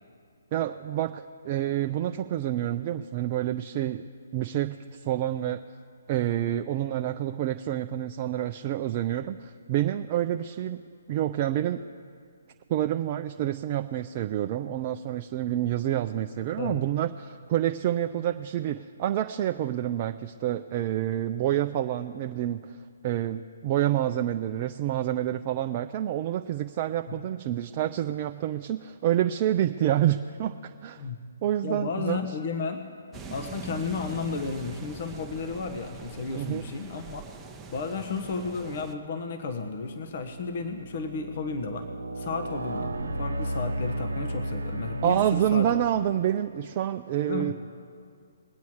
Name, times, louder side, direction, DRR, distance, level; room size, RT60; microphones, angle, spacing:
voice 1, 0.5-4.0 4.3-5.6 6.1-10.8 11.1-11.8 12.7-22.8 23.0-31.1 31.4-32.2 36.3-36.6 45.0-47.5, right 12 dB, 35° right, 6 dB, 0.4 m, -28 dB
voice 2, 31.6-32.8 33.3-37.2 37.7-41.9 42.2-45.7 47.3-47.5, left 4 dB, 50° left, 6 dB, 1.0 m, -33 dB
sound 1, 33.1-38.9, right 5 dB, 10° right, 0.8 m, -43 dB
sound 2, 39.4-46.3, right 1 dB, 85° right, 0.9 m, -34 dB
21.5 x 8.3 x 4.7 m, 2.3 s
figure-of-eight pair, 135°, 0 cm